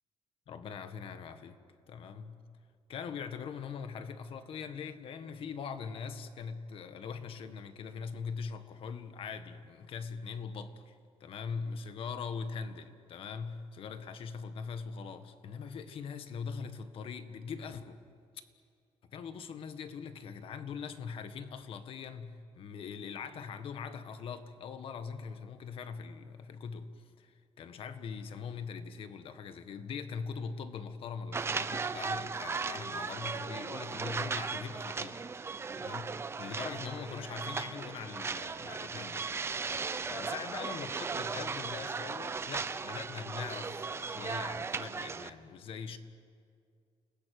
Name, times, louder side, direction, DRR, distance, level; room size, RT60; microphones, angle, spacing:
voice 1, 0.5-1.6 1.9-2.4 2.9-18.0 19.1-35.2 35.7-39.3 39.6-46.0, left 6 dB, 55° left, 9 dB, 1.6 m, -42 dB
sound 1, 31.3-45.3, right 5 dB, 25° right, 0.8 m, -37 dB
29.5 x 20.5 x 9.5 m, 2.3 s
cardioid pair, 160°, 11 cm